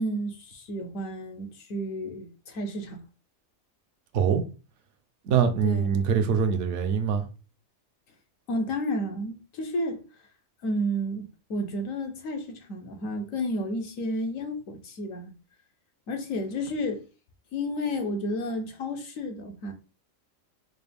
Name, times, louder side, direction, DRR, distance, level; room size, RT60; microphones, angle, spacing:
voice 1, 0.0-3.0 5.6-5.9 8.5-10.0 10.6-15.3 16.1-17.0 17.5-19.7, equal, 75° left, 1.3 m, -31 dB
voice 2, 5.2-7.3, right 7 dB, 65° right, 0.9 m, -23 dB
4.8 x 2.2 x 3.4 m
omnidirectional pair, 1.4 m